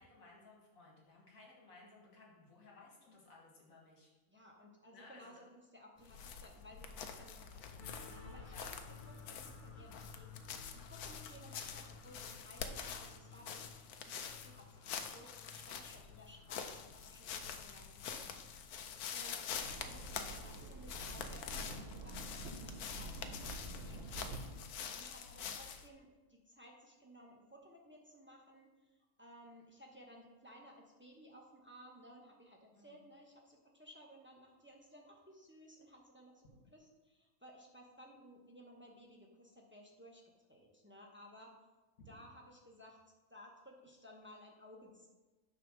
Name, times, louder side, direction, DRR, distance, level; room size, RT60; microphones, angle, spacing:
voice 1, 0.0-4.1 4.9-5.3 8.4-8.7 32.7-32.9 36.5-36.7 42.0-42.1, left 3 dB, 60° left, -3 dB, 2.2 m, -59 dB
voice 2, 4.3-9.0 9.3-10.5 10.7-13.7 14.0-18.5 19.1-24.4 24.9-40.2 40.5-41.6 42.1-43.0 43.3-45.1, equal, 10° right, -1 dB, 0.8 m, -58 dB
sound 1, 6.0-25.9, left 7 dB, 80° left, 1.1 m, -46 dB
sound 2, 7.8-20.5, left 5 dB, 40° left, 0.9 m, -58 dB
sound 3, 19.5-24.6, right 2 dB, 45° right, 1.3 m, -48 dB
9.5 x 3.5 x 6.1 m, 1.2 s
omnidirectional pair, 1.6 m